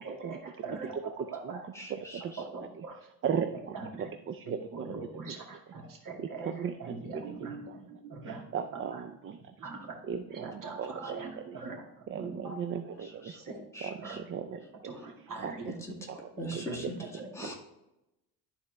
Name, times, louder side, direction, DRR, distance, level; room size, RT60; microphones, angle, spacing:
voice 1, 0.0-1.0 1.3-1.6 2.4-3.0 3.2-3.4 3.7-4.1 4.5-6.5 6.8-8.4 8.9-9.0 9.6-9.8 10.3-11.8 12.2-12.6 13.3-13.6 14.0-14.2 14.8-15.7 16.7-16.8 17.2-17.3, right 4 dB, 50° right, 0 dB, 2.3 m, -41 dB
voice 2, 0.9-1.6 1.9-2.3 3.2-4.9 5.2-5.3 6.2-6.8 7.1-7.4 7.7-7.8 8.2-9.5 10.0-11.2 12.1-13.4 13.8-14.7 15.4-15.7 16.1-16.2 16.5-16.6, right 7 dB, 35° right, 9 dB, 0.4 m, -37 dB
voice 3, 1.7-2.4 13.0-13.4 13.7-14.2 14.9-15.1 15.4-15.5 15.8-15.9 16.4-17.5, equal, 5° left, -3 dB, 2.2 m, -42 dB
12.5 x 4.3 x 3.3 m, 0.91 s
cardioid pair, 115°, 41 cm